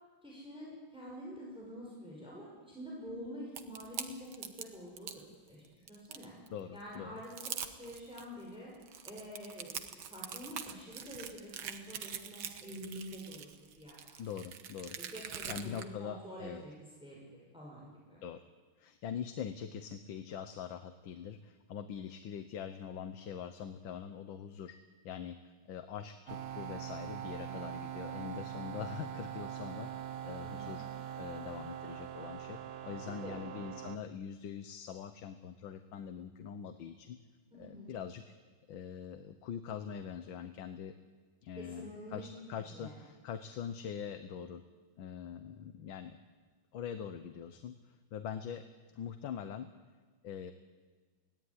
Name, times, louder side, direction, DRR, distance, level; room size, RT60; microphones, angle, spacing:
voice 1, 0.2-6.3 6.7-7.5 7.8-8.7 9.0-13.5 13.8-14.2 15.0-16.7 17.0-18.2 27.4-27.7 30.4-30.8 33.2-33.4 37.5-37.9 41.6-42.3 42.6-43.0, equal, ahead, -4 dB, 5.7 m, -47 dB
sound 1, 3.5-5.2 5.6-6.5 6.9-7.0 7.2-8.2 8.7-15.8, right 8 dB, 80° right, 2.0 m, -44 dB
voice 2, 6.5-7.1 14.2-15.0 15.5-16.6 18.2-18.4 18.8-24.8 25.0-29.9 30.2-30.9 31.1-37.2 37.6-38.2 38.7-40.9 41.4-44.6 45.0-46.2 46.7-48.7 48.9-49.7 50.2-50.5, left 8 dB, 70° left, 9 dB, 1.7 m, -43 dB
sound 2, 26.3-34.0, right 10 dB, 65° right, 0.6 m, -43 dB
24.0 x 17.5 x 9.8 m, 1.4 s
omnidirectional pair, 2.2 m